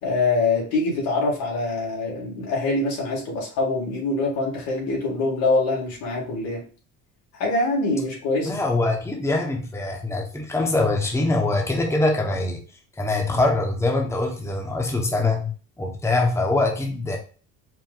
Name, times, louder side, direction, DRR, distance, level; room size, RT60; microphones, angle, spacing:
voice 1, 0.0-6.6 7.3-8.5, left 2 dB, 85° left, -2 dB, 2.0 m, -24 dB
voice 2, 8.4-12.6 13.0-17.2, left 2 dB, 10° left, 1 dB, 0.9 m, -23 dB
4.5 x 2.2 x 3.8 m, 0.38 s
cardioid pair, 105°, 35 cm